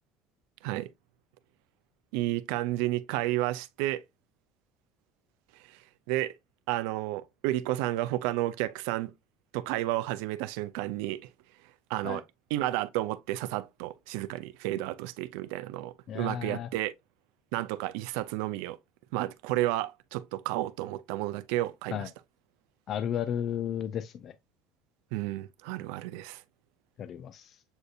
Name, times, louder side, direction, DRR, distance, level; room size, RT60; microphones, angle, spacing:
voice 1, 2.1-4.0 5.7-5.8 6.1-6.4 6.7-9.1 9.5-11.2 11.9-12.2 12.5-16.9 17.5-18.8 19.1-22.1 25.1-26.4, right 16 dB, 90° right, 0.4 m, -31 dB
voice 2, 16.1-16.7 21.9-22.1 22.9-24.3 27.0-27.6, left 9 dB, 40° left, 0.4 m, -33 dB
7.9 x 2.7 x 2.4 m
cardioid pair, 145°, 0 cm